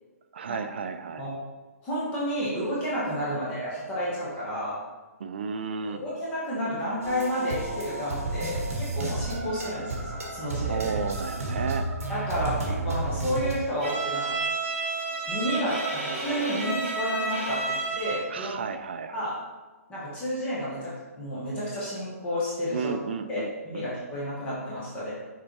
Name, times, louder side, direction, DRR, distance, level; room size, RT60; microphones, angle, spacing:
voice 1, 0.3-1.3 3.3-3.4 5.2-6.0 10.7-11.9 18.3-19.3 22.7-23.9, right 5 dB, 45° right, 9 dB, 0.4 m, -33 dB
voice 2, 1.8-4.7 5.8-10.9 12.1-14.4 15.3-17.6 17.9-18.6 19.1-19.3 19.9-22.9 23.3-25.1, equal, 10° left, -8 dB, 1.2 m, -31 dB
sound 1, 7.0-13.5, right 2 dB, 65° right, 1.6 m, -31 dB
Bowed string instrument, 13.8-18.4, right 3 dB, 25° right, 1.5 m, -30 dB
6.5 x 3.4 x 4.7 m, 1.2 s
hypercardioid pair, 170°, 8 cm